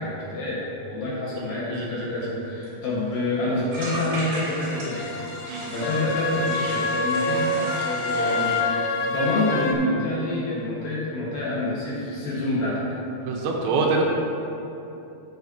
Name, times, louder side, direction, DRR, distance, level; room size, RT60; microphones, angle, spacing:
voice 1, 0.0-5.0 5.7-12.9 13.2-13.3, left 2 dB, 60° left, -7 dB, 2.9 m, -27 dB
voice 2, 1.4-2.1 5.5-5.9 13.2-14.0, right 4 dB, 85° right, 0 dB, 3.3 m, -26 dB
sound 1, 2.3-2.4 2.6-2.7 3.0-3.2 3.7-8.6, right 1 dB, 65° right, 3.9 m, -36 dB
sound 2, 4.0-9.8, left 2 dB, 80° left, 2.6 m, -27 dB
12.0 x 7.6 x 2.8 m, 2.9 s
omnidirectional pair, 5.1 m